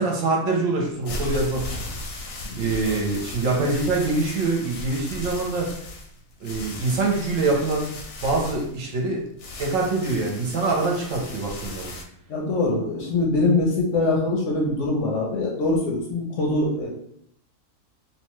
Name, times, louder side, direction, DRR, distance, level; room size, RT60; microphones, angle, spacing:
voice 1, 0.0-1.9 2.5-5.7 6.4-7.9 8.2-9.2 9.6-11.9, right 3 dB, 65° right, -1 dB, 0.9 m, -24 dB
sound 1, 0.8-12.0, left 2 dB, 80° left, 1.1 m, -36 dB
voice 2, 2.4-3.1 12.3-16.9, left 2 dB, 65° left, -1 dB, 0.8 m, -23 dB
2.8 x 2.2 x 3.0 m, 0.69 s
omnidirectional pair, 1.6 m